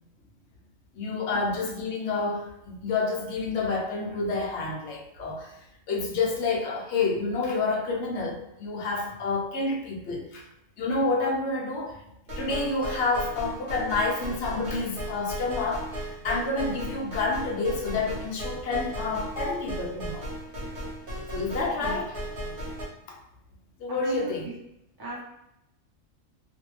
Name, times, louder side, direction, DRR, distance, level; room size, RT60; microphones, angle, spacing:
voice 1, 0.9-5.6 5.9-10.4 10.8-12.0 12.4-20.3 21.3-22.2 23.1-23.2 23.8-24.5, left 3 dB, 65° left, 0 dB, 0.8 m, -29 dB
sound 1, 12.3-22.8, right 1 dB, 45° right, 1.0 m, -36 dB
voice 2, 23.9-24.5 25.0-25.2, right 3 dB, 25° right, -5 dB, 0.5 m, -38 dB
2.5 x 2.1 x 3.1 m, 0.82 s
omnidirectional pair, 1.4 m